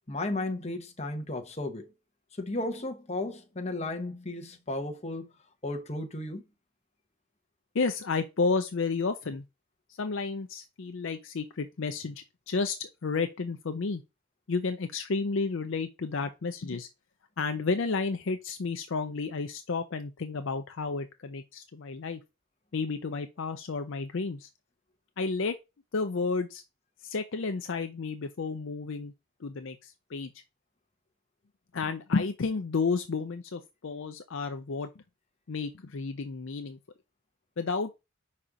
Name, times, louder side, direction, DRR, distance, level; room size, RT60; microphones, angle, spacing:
voice 1, 0.1-1.9 2.4-5.2 5.6-6.4, left 2 dB, 30° left, 1.0 m, -34 dB
voice 2, 7.7-9.4 10.0-14.0 14.5-16.9 17.4-22.2 22.7-24.5 25.2-25.6 25.9-26.6 27.0-29.1 29.4-30.3 31.7-34.9 35.5-36.8 37.6-38.0, left 4 dB, 60° left, 0.5 m, -31 dB
5.1 x 4.2 x 4.9 m
head